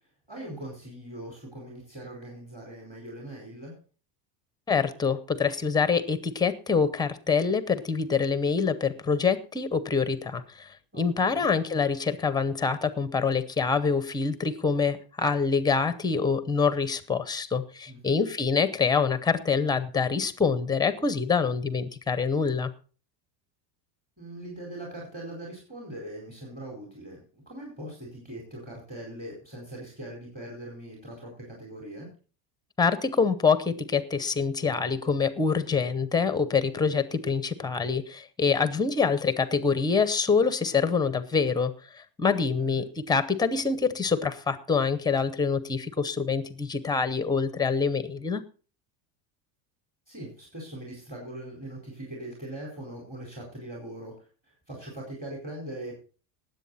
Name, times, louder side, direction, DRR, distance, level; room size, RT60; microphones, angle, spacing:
voice 1, 0.3-3.7 10.9-11.5 17.9-18.2 24.2-32.1 42.5-42.8 50.1-56.0, right 1 dB, 20° right, -2 dB, 4.4 m, -41 dB
voice 2, 4.7-22.7 32.8-48.4, left 5 dB, 10° left, 13 dB, 0.6 m, -26 dB
19.0 x 8.1 x 4.1 m, 0.38 s
cardioid pair, 160°, 45 cm